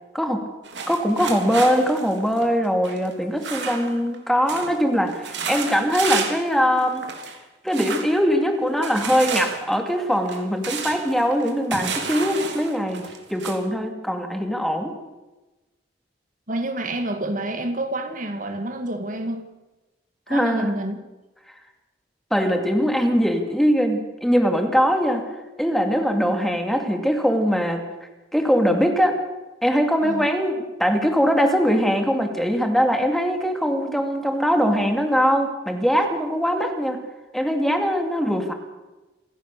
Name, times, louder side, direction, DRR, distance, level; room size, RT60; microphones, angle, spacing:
sound 1, 0.6-4.2 4.5-4.8 5.1-6.5 6.8-7.4 7.7-8.1 8.8-13.6, right 5 dB, 80° right, 3.3 m, -31 dB
voice 1, 0.9-7.1 7.6-14.9 20.3-20.7 22.3-25.2 25.6-27.8 28.3-29.2 29.6-37.0 37.3-38.5, equal, ahead, 2.4 m, -21 dB
voice 2, 16.5-19.4 20.3-21.0 30.0-30.3, right 1 dB, 50° right, 2.2 m, -28 dB
27.5 x 16.0 x 6.8 m
head